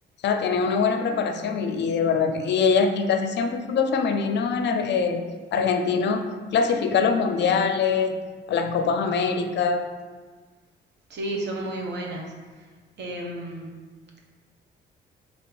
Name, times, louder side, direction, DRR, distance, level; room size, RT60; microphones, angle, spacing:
voice 1, 0.2-8.2 8.5-9.8, left 5 dB, 60° left, 6 dB, 0.4 m, -23 dB
voice 2, 11.1-12.3 13.0-13.7, right 1 dB, 60° right, -1 dB, 0.9 m, -32 dB
4.3 x 2.8 x 3.4 m, 1.4 s
cardioid pair, 90°, 20 cm